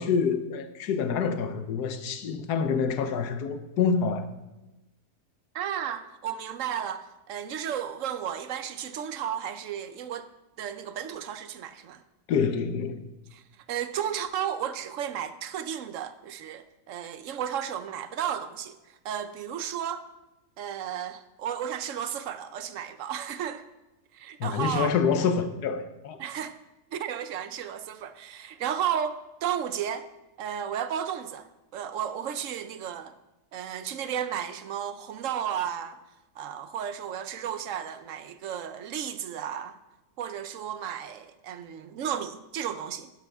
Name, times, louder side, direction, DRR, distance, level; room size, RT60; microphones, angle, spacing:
voice 1, 0.0-4.3 12.3-13.0 24.4-26.2, left 6 dB, 85° left, 1.4 m, -27 dB
voice 2, 5.5-10.3 10.6-12.0 13.3-20.0 20.6-23.6 24.1-25.0 26.2-26.6 26.9-30.1 30.4-33.1 33.5-36.0 36.4-39.8 40.2-43.1, right 9 dB, 60° right, 0.9 m, -33 dB
11.5 x 10.5 x 3.5 m
omnidirectional pair, 1.7 m